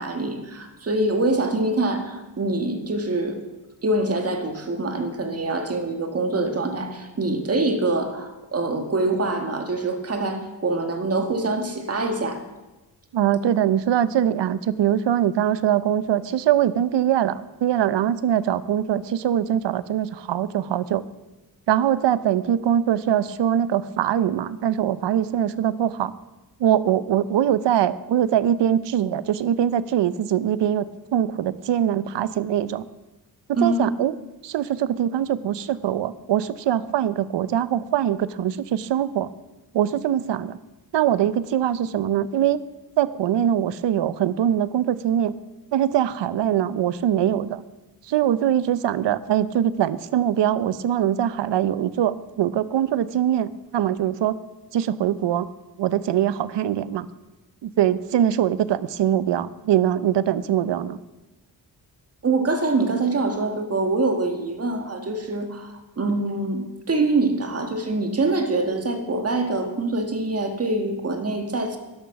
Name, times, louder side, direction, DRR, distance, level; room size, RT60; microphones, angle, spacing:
voice 1, 0.0-3.4 3.8-12.4 33.5-33.9 62.2-71.8, right 2 dB, 35° right, 5 dB, 1.7 m, -24 dB
voice 2, 13.1-21.0 21.7-26.1 26.6-32.9 33.5-34.1 34.4-39.3 39.7-40.6 40.9-42.6 43.0-45.4 45.7-47.6 48.1-54.4 54.7-55.5 55.8-57.1 57.6-61.0, right 10 dB, 80° right, 16 dB, 0.7 m, -22 dB
12.5 x 11.0 x 5.9 m, 1.1 s
wide cardioid pair, 115°, 42 cm